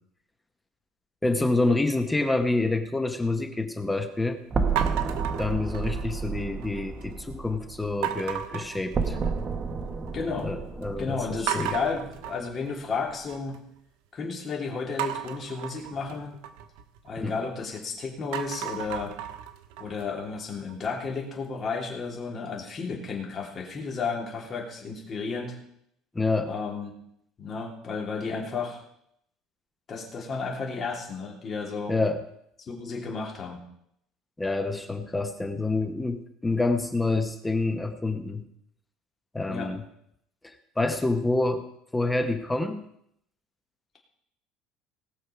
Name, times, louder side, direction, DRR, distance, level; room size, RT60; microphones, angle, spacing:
voice 1, 1.2-4.4 5.4-9.2 10.4-11.7 17.2-17.3 26.1-26.5 31.9-32.2 34.4-38.4 39.3-39.8 40.8-41.6 41.9-42.9, left 2 dB, 10° left, 7 dB, 0.9 m, -27 dB
sound 1, 4.5-8.5 8.9-12.3, right 4 dB, 25° right, 1.1 m, -31 dB
sound 2, 4.8-6.2 6.6-7.1 8.0-9.6 9.9-10.4 10.8-10.9 11.5-13.6 15.0-17.8 18.2-21.1, right 12 dB, 85° right, 1.1 m, -35 dB
voice 2, 10.1-10.5 11.0-13.6 14.1-16.4 17.0-19.2 19.8-25.6 26.4-26.9 27.4-28.8 29.9-31.9 32.7-33.6 39.5-39.7, left 4 dB, 30° left, -1 dB, 3.1 m, -32 dB
19.0 x 6.5 x 5.7 m, 0.74 s
cardioid pair, 160°, 0 cm